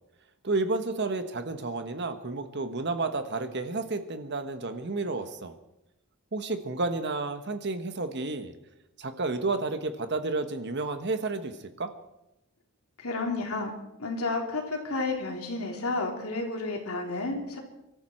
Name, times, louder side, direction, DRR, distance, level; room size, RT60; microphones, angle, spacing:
voice 1, 0.4-5.5 6.3-8.5 9.0-11.9, right 3 dB, 50° right, 9 dB, 1.2 m, -31 dB
voice 2, 13.0-13.7 14.0-17.6, left 3 dB, 80° left, 2 dB, 3.3 m, -31 dB
24.5 x 13.0 x 4.5 m, 0.90 s
head